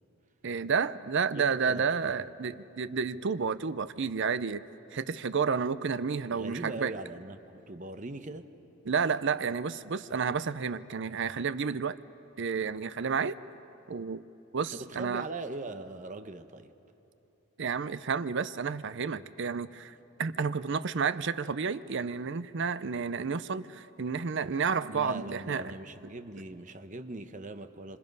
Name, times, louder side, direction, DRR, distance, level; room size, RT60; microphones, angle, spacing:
voice 1, 0.4-4.6 4.9-6.9 8.9-12.0 12.4-13.4 13.9-14.2 14.5-15.3 17.6-25.7, right 5 dB, 60° right, 14 dB, 0.6 m, -31 dB
voice 2, 1.3-1.9 6.3-8.5 14.7-16.7 24.9-28.0, right 2 dB, 35° right, 9 dB, 0.9 m, -40 dB
26.0 x 26.0 x 5.4 m, 2.9 s
head